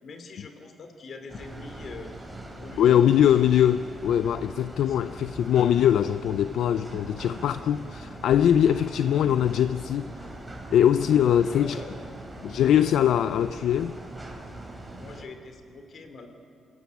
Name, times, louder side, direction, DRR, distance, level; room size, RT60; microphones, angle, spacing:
voice 1, 0.0-2.1 2.5-3.1 4.8-5.0 11.5-11.9 14.9-16.3, left 4 dB, 55° left, 7 dB, 3.2 m, -43 dB
sound 1, 1.3-15.2, right 1 dB, 10° right, 4.3 m, -41 dB
voice 2, 2.8-10.1 10.7-11.8 12.4-14.0, left 10 dB, 75° left, 13 dB, 0.5 m, -22 dB
27.0 x 16.0 x 9.5 m, 2.6 s
cardioid pair, 90°, 0 cm